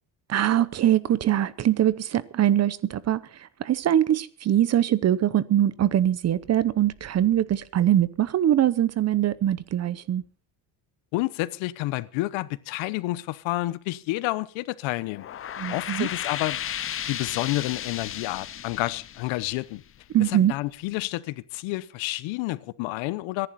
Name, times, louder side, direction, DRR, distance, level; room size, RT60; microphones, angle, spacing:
voice 1, 0.3-3.2 3.6-10.2 15.6-16.1 20.1-20.5, right 11 dB, 35° right, 0.8 m, -22 dB
voice 2, 11.1-15.3 15.7-16.6 17.1-19.8 20.2-23.5, left 19 dB, 75° left, 1.0 m, -29 dB
sound 1, 15.0-20.3, left 10 dB, 30° left, 0.6 m, -34 dB
24.0 x 11.0 x 4.2 m
cardioid pair, 140°, 46 cm